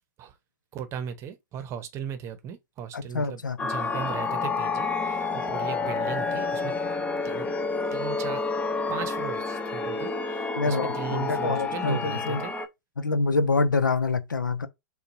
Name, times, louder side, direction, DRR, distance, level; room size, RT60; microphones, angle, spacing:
voice 1, 0.7-6.7 7.2-7.5 7.9-8.4 8.9-12.5, right 8 dB, 30° right, 0.9 m, -37 dB
voice 2, 2.9-3.6 10.6-12.4 13.0-14.7, left 3 dB, 80° left, 0.6 m, -26 dB
sound 1, 3.6-12.7, left 4 dB, 15° left, 0.6 m, -29 dB
6.5 x 2.3 x 2.7 m
figure-of-eight pair, 105°, 10 cm